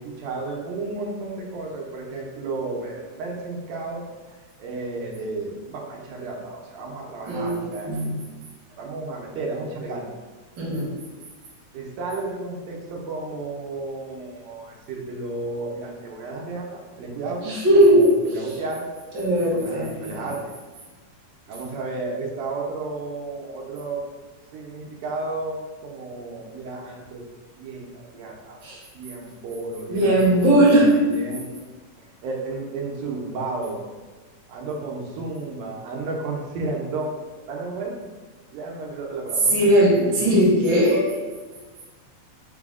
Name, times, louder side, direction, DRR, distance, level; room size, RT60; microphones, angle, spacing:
voice 1, 0.0-4.0 4.3-7.9 8.8-10.1 11.7-17.4 17.9-18.9 19.5-20.4 21.5-24.0 24.5-27.2 27.6-28.6 28.9-30.1 30.5-31.6 32.0-33.9 34.5-37.1 37.5-37.9 38.5-39.5 40.0-40.2, right 3 dB, 90° right, -1 dB, 2.3 m, -32 dB
voice 2, 7.3-8.2 10.6-10.9 17.4-18.0 19.1-20.2 28.6-28.8 29.9-30.9 39.5-41.1, right 1 dB, 50° right, -7 dB, 1.5 m, -18 dB
5.4 x 2.0 x 3.6 m, 1.3 s
omnidirectional pair, 3.5 m